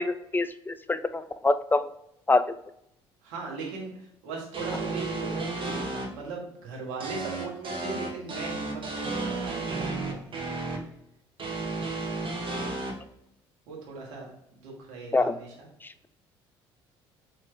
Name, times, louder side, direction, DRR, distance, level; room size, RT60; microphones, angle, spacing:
voice 1, 0.0-1.8 2.3-2.4 15.1-15.3, left 3 dB, 15° left, 12 dB, 0.3 m, -25 dB
voice 2, 3.2-10.5 13.7-14.3 14.5-15.7, right 4 dB, 75° right, -2 dB, 1.4 m, -38 dB
sound 1, 4.5-6.0 7.0-10.8 11.4-12.9, right 3 dB, 40° right, 1.2 m, -32 dB
3.9 x 3.1 x 3.3 m, 0.77 s
hypercardioid pair, 60°, 13 cm